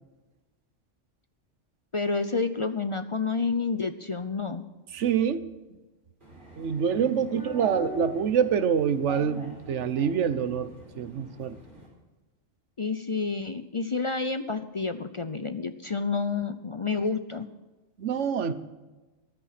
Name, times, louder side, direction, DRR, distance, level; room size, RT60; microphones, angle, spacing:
voice 1, 1.9-4.6 7.0-7.1 12.8-17.5, left 4 dB, 40° left, 10 dB, 0.4 m, -29 dB
voice 2, 4.9-5.5 6.6-11.6 18.0-18.5, right 7 dB, 65° right, 13 dB, 1.2 m, -26 dB
sound 1, 6.2-11.9, equal, 40° right, 4.9 m, -42 dB
14.0 x 11.0 x 5.8 m, 1.2 s
omnidirectional pair, 1.3 m